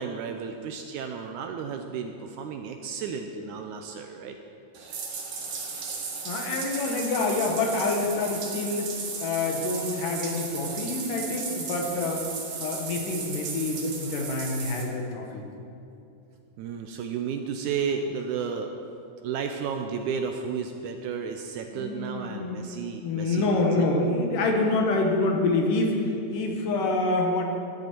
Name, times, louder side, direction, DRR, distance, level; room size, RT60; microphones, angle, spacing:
voice 1, 0.0-4.4 16.6-18.7 19.2-23.9, right 6 dB, 80° right, 5 dB, 1.9 m, -33 dB
Bathtub (filling or washing), 4.7-14.8, right 5 dB, 55° right, 1.9 m, -35 dB
voice 2, 6.3-8.9 9.2-12.3 12.6-15.4 21.7-27.4, left 2 dB, 75° left, 2 dB, 2.8 m, -27 dB
13.0 x 9.8 x 4.5 m, 2.7 s
omnidirectional pair, 3.9 m